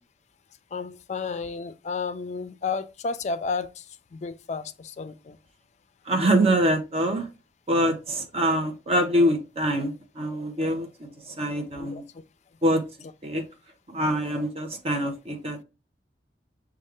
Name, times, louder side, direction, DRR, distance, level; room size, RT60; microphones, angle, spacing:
voice 1, 0.7-3.7 4.1-5.4 11.7-12.0, left 4 dB, 40° left, 0.4 m, -32 dB
voice 2, 6.1-7.2 7.7-9.9 10.2-11.1 11.4-12.0 12.6-12.8 13.2-13.4 13.9-15.6, right 1 dB, 35° right, 0.8 m, -24 dB
6.2 x 2.4 x 3.4 m
head